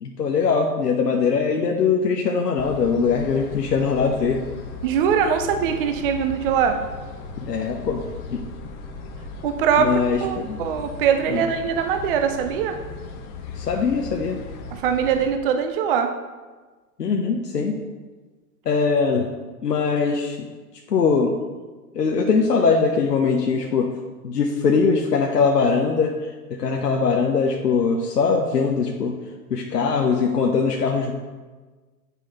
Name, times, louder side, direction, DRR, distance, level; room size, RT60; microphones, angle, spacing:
voice 1, 0.0-4.4 7.5-8.0 8.3-8.4 9.8-10.6 11.3-11.4 13.6-14.4 17.0-17.8 18.7-19.3 19.6-20.4 20.9-21.3 21.9-23.9 24.2-26.1 26.6-29.1 29.5-31.1, left 5 dB, 85° left, 1 dB, 0.8 m, -21 dB
sound 1, 2.6-15.3, left 4 dB, 30° left, 0.7 m, -37 dB
voice 2, 4.8-6.8 9.4-12.8 14.7-16.1, right 7 dB, 35° right, 7 dB, 0.5 m, -22 dB
7.5 x 5.5 x 4.2 m, 1.3 s
hypercardioid pair, 115°, 47 cm